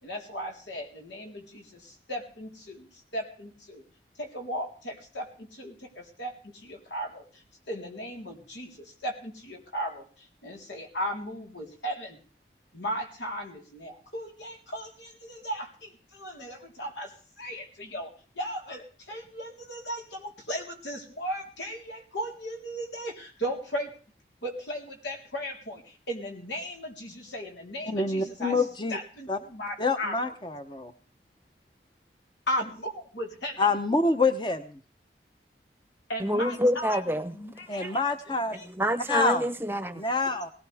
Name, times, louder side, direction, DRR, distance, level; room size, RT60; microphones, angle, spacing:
voice 1, 0.0-3.8 4.2-12.2 12.7-24.0 24.4-28.6 28.9-30.3 32.5-33.7 36.1-37.0 37.3-38.0 38.5-38.7, equal, 85° left, 3.9 m, -36 dB
voice 2, 27.9-29.0 29.3-29.4 29.8-30.9 33.6-34.6 37.7-38.5 39.1-39.4 40.0-40.5, left 3 dB, 25° left, 0.8 m, -26 dB
voice 3, 36.2-37.3 37.8-38.0 38.5-40.0, equal, 10° right, 0.8 m, -27 dB
18.5 x 18.0 x 3.5 m
head